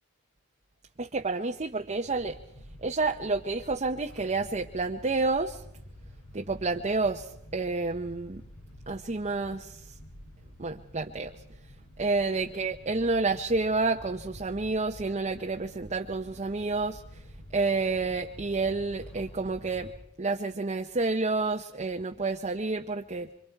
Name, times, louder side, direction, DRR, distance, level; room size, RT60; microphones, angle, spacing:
voice 1, 1.0-2.4 2.8-5.6 6.3-8.4 8.9-9.8 10.6-11.3 12.0-17.0 17.5-19.9 20.2-23.3, right 3 dB, 30° right, 3 dB, 0.8 m, -29 dB
sound 1, 1.9-19.9, equal, 85° left, 6.6 m, -49 dB
26.5 x 25.0 x 4.6 m, 0.74 s
head